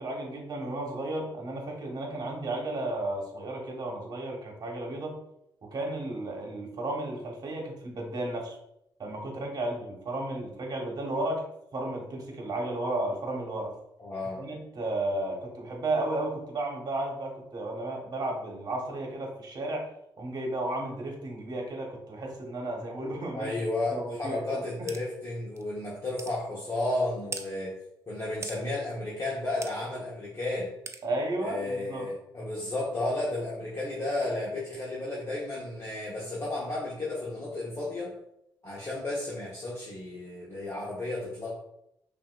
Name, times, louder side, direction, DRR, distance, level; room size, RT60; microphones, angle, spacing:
voice 1, 0.0-5.2 5.6-8.6 9.0-11.4 11.7-13.7 14.4-19.9 20.2-23.5 23.9-24.9 31.0-32.1, right 2 dB, 50° right, 1 dB, 1.2 m, -33 dB
voice 2, 14.0-14.4 23.3-27.7 28.1-30.7 31.4-38.1 38.6-41.5, left 2 dB, 35° left, -6 dB, 1.1 m, -33 dB
sound 1, 24.9-25.0 25.6-25.7 26.2-26.4 27.3-27.5 28.4-28.6 29.6-29.7 30.9-31.0, right 4 dB, 35° right, 0.4 m, -38 dB
5.5 x 2.6 x 2.4 m, 0.80 s
cardioid pair, 75°, 9 cm